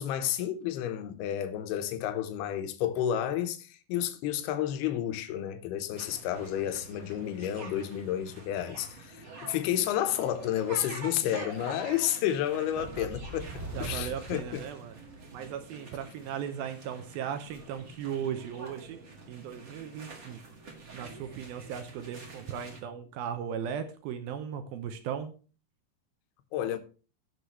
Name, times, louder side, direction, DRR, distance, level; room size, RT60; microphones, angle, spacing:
voice 1, 0.0-14.6 26.5-26.8, left 11 dB, 80° left, 2.9 m, -31 dB
sound 1, 6.0-22.8, right 3 dB, 60° right, 0.8 m, -47 dB
voice 2, 12.5-13.1 13.7-15.0 15.3-19.0 19.3-20.4 20.9-25.4, right 8 dB, 75° right, 2.4 m, -37 dB
sound 2, 12.7-15.4, right 2 dB, 5° right, 1.5 m, -42 dB
17.0 x 6.5 x 3.1 m
omnidirectional pair, 4.6 m